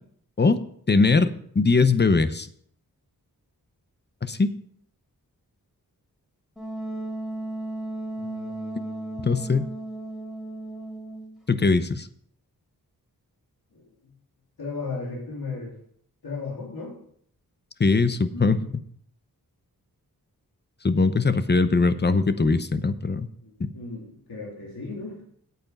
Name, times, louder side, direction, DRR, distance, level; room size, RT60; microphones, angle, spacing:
voice 1, 0.9-1.3 1.5-2.5 4.3-4.5 9.2-9.7 11.5-12.1 17.8-18.6 20.8-23.3 23.6-23.7, left 3 dB, 30° left, 12 dB, 0.7 m, -21 dB
Wind instrument woodwind instrument, 6.6-11.4, right 1 dB, ahead, 3.7 m, -35 dB
voice 2, 8.1-9.2 13.7-14.1 14.6-15.7 16.2-16.9 18.3-18.7 23.4-25.2, left 3 dB, 85° left, -4 dB, 3.4 m, -36 dB
8.8 x 8.4 x 5.3 m, 0.63 s
wide cardioid pair, 90°, 36 cm